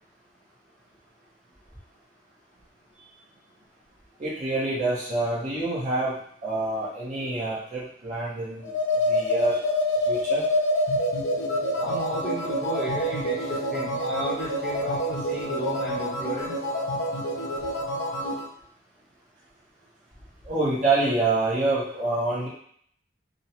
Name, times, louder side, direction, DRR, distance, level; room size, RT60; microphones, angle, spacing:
voice 1, 4.2-6.2 6.4-8.7 9.1-9.6 10.1-10.5 20.5-22.5, right 2 dB, 40° right, -8 dB, 0.7 m, -26 dB
sound 1, 8.6-18.5, left 1 dB, 75° left, 0.5 m, -27 dB
voice 2, 11.8-16.6, equal, 5° right, -10 dB, 0.8 m, -33 dB
2.5 x 2.0 x 2.9 m, 0.62 s
head